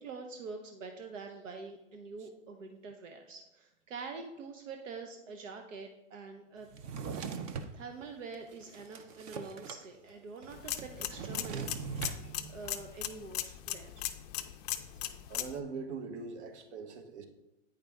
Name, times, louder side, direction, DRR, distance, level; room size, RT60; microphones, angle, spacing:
voice 1, 0.0-6.7 7.7-11.7 12.1-14.0 14.9-15.0, right 4 dB, 85° right, 4 dB, 0.9 m, -45 dB
Drawer open or close, 6.7-7.7 8.3-9.8 10.1-10.2 10.4-12.2, right 6 dB, 30° right, 0.5 m, -40 dB
sound 1, 10.5-15.6, left 13 dB, 35° left, 0.4 m, -39 dB
voice 2, 12.1-12.6 13.8-13.9 15.3-17.2, right 5 dB, 65° right, 7 dB, 1.2 m, -42 dB
8.8 x 5.1 x 3.4 m, 0.93 s
hypercardioid pair, 140°, 37 cm